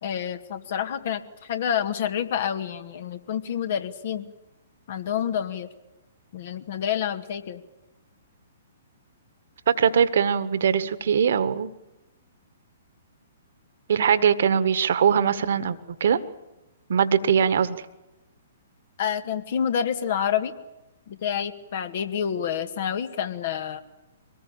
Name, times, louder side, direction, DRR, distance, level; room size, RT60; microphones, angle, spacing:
voice 1, 0.0-4.3 4.9-5.7 6.3-7.6 19.0-20.5 21.1-23.8, left 8 dB, 50° left, 9 dB, 2.0 m, -28 dB
voice 2, 9.7-11.7 13.9-16.2 16.9-17.8, right 7 dB, 60° right, 13 dB, 1.7 m, -21 dB
24.5 x 19.5 x 8.8 m, 0.99 s
figure-of-eight pair, 120°, 0 cm